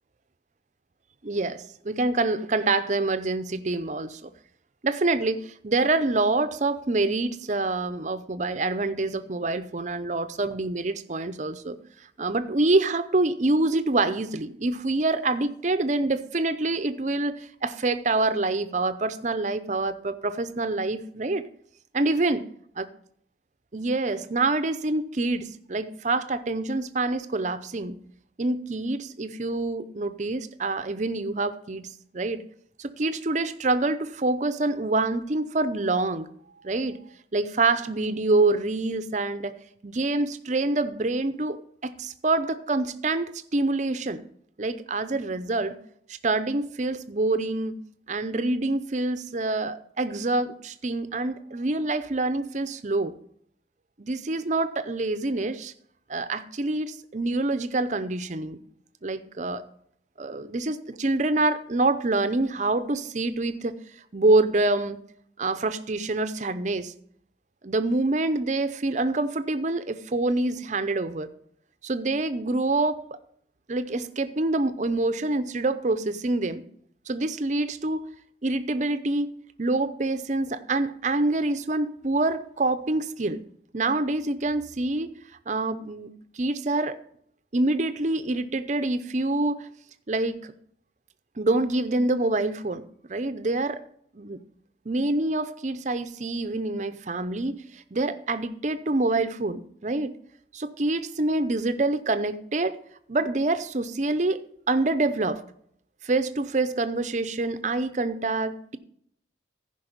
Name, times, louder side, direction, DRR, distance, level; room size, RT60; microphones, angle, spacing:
voice 1, 1.2-4.3 4.8-11.8 12.2-21.5 21.9-22.4 22.8-22.9 23.7-28.0 28.4-32.4 32.8-36.3 36.6-37.0 37.3-39.5 39.8-44.2 44.6-45.8 46.1-47.8 48.1-53.2 54.0-55.7 56.1-58.6 59.0-59.6 60.2-63.8 64.1-65.0 65.4-66.9 67.6-71.3 71.8-73.0 73.7-76.6 77.1-78.0 78.4-79.3 79.6-83.4 83.7-85.1 85.5-87.0 87.5-89.7 90.1-90.5 91.4-93.8 94.1-94.4 94.9-100.2 100.5-102.8 103.1-105.4 106.0-108.8, right 2 dB, 40° right, 0.6 m, -26 dB
14.5 x 5.3 x 5.2 m
head